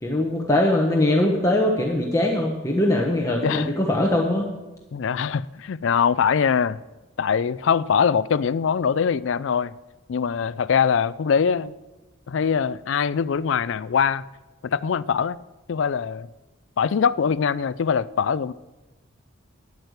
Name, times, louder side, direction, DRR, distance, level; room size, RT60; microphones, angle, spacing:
voice 1, 0.0-4.5, left 1 dB, 15° left, 1.1 m, -21 dB
voice 2, 4.9-6.8 7.2-9.7 10.1-11.7 12.3-14.2 14.6-15.4 15.7-16.3 16.8-18.5, left 6 dB, 60° left, 0.4 m, -22 dB
11.0 x 8.8 x 8.0 m
head